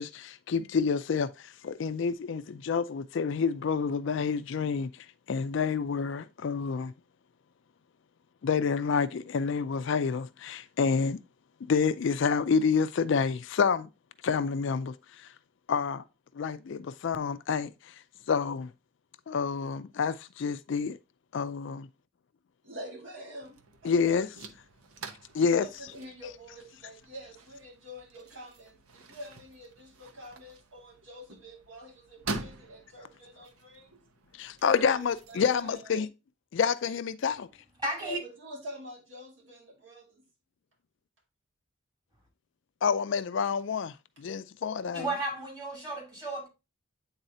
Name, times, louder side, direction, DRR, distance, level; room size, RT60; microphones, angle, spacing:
voice 1, 0.0-4.9 5.3-6.9 8.4-11.2 11.7-13.9 14.2-15.3 15.7-16.0 16.3-17.9 18.3-18.7 19.3-21.0 21.3-21.8 23.8-24.3 25.3-25.7 34.4-36.1 36.5-37.5 42.8-45.1, left 6 dB, 60° left, 0.4 m, -28 dB
voice 2, 22.6-24.2 25.6-34.0 34.7-36.1 38.0-40.2, equal, 60° right, 2.1 m, -46 dB
sound 1, 23.4-35.7, right 3 dB, 85° right, 0.8 m, -45 dB
voice 3, 37.8-38.2 44.9-46.5, right 2 dB, 20° right, 2.7 m, -33 dB
8.9 x 4.0 x 2.7 m
head